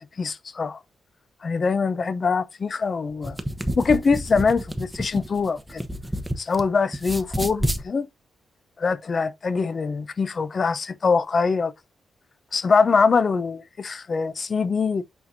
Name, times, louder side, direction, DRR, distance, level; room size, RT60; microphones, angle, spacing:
voice 1, 0.2-0.8 1.4-3.4 3.8-5.8 6.4-8.1 8.8-11.7 12.5-15.0, left 5 dB, 40° left, 0.8 m, -23 dB
sound 1, 3.1-6.6 6.9-7.8, equal, 5° right, 1.0 m, -29 dB
8.3 x 4.4 x 2.7 m
cardioid pair, 115°, 0 cm